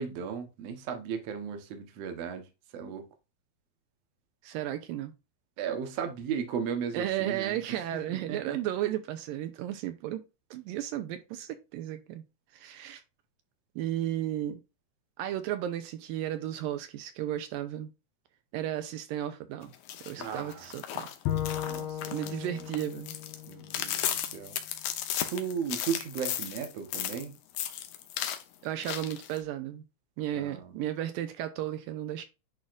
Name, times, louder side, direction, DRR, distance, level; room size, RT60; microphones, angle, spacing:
voice 1, 0.0-2.4 2.7-3.1 5.6-8.6 20.2-20.7 21.6-22.4 23.4-24.6 25.3-27.4 30.3-30.8, right 7 dB, 60° right, 1.8 m, -36 dB
voice 2, 4.4-5.1 6.9-10.2 10.5-12.2 12.5-13.0 13.8-14.6 15.2-17.9 18.5-19.7 20.0-21.1 22.1-23.2 28.6-29.8 30.2-32.2, right 12 dB, 80° right, 2.3 m, -34 dB
sound 1, 19.7-27.2 27.5-28.4 28.8-29.4, left 10 dB, 70° left, 1.9 m, -35 dB
Bowed string instrument, 21.3-24.5, left 11 dB, 85° left, 2.8 m, -36 dB
10.5 x 3.7 x 2.5 m
omnidirectional pair, 4.2 m